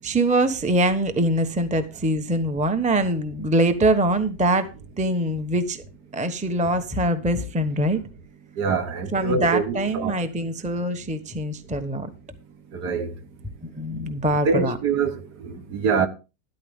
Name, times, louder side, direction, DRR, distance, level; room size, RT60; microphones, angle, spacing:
voice 1, 0.0-5.8 6.1-8.0 9.1-12.1 13.6-14.8, right 1 dB, 5° right, 0.9 m, -23 dB
voice 2, 8.6-10.2 12.7-13.1 14.5-16.1, right 5 dB, 70° right, 1.7 m, -24 dB
13.0 x 12.0 x 3.6 m
omnidirectional pair, 1.9 m